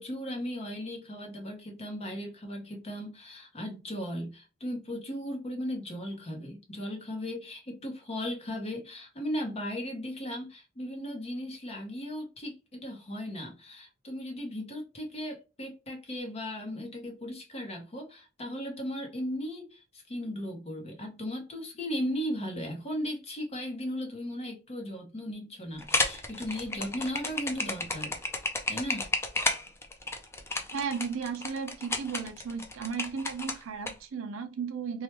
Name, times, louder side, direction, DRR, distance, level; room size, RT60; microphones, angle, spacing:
voice 1, 0.0-28.2 28.7-29.1, equal, 30° left, 0.8 m, -36 dB
sound 1, 25.8-33.9, left 2 dB, 15° left, 0.4 m, -32 dB
voice 2, 30.7-35.0, right 6 dB, 75° right, 0.5 m, -35 dB
3.2 x 2.2 x 2.9 m
head